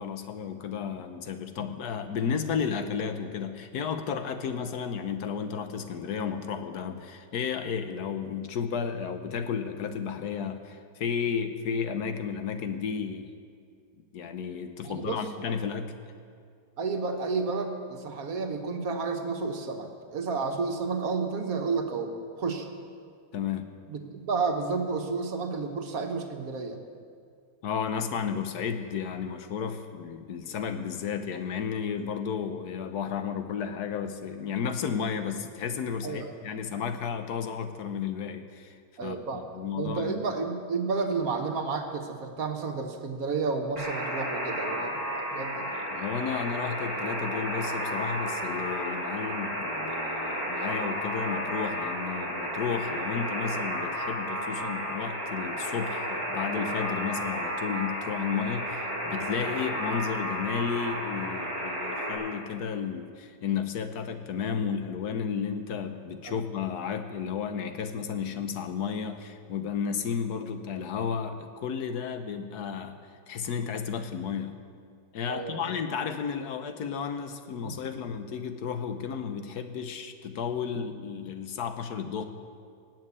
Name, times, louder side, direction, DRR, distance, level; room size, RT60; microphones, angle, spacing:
voice 1, 0.0-13.3 14.1-15.9 23.3-23.7 27.6-38.7 39.0-40.1 45.9-73.0 73.3-74.6 75.1-82.2, left 6 dB, 70° left, 8 dB, 1.4 m, -33 dB
voice 2, 14.8-15.2 16.8-22.7 23.9-26.8 36.0-36.3 39.0-39.4 39.8-45.7 66.2-66.4 75.3-75.8 77.6-77.7, right 4 dB, 60° right, 5 dB, 1.6 m, -31 dB
Alarm, 43.8-62.1, equal, 25° left, 5.3 m, -32 dB
18.5 x 7.7 x 8.3 m, 2.2 s
omnidirectional pair, 1.8 m